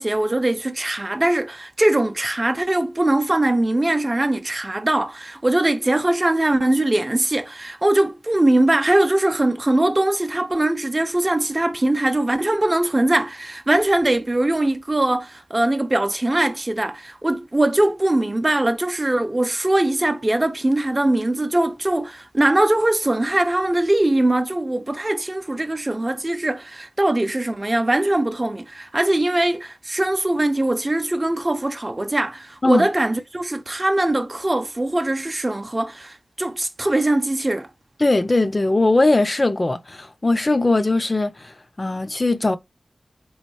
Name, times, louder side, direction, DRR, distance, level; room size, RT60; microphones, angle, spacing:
voice 1, 0.0-37.7, right 1 dB, 30° right, 0.6 m, -21 dB
voice 2, 38.0-42.6, left 2 dB, 40° left, 0.5 m, -20 dB
3.7 x 3.1 x 3.1 m
cardioid pair, 50°, 0 cm